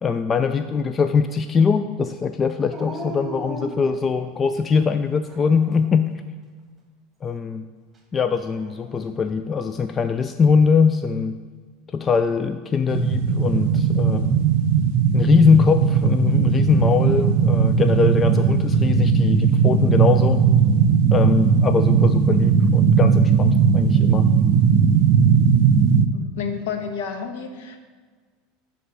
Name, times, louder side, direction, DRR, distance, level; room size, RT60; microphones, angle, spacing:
voice 1, 0.0-6.1 7.2-7.7 8.1-11.4 11.9-14.4 15.1-20.5 21.1-24.3, left 5 dB, 30° left, 9 dB, 0.4 m, -21 dB
Dog, 2.7-4.6 5.2-6.0 8.3-9.1, right 1 dB, 20° right, 1.7 m, -37 dB
sound 1, 12.9-26.1, right 6 dB, 55° right, 0.5 m, -18 dB
voice 2, 26.1-27.8, left 6 dB, 60° left, 5 dB, 1.1 m, -30 dB
11.0 x 3.6 x 5.4 m, 1.5 s
figure-of-eight pair, 80°, 0 cm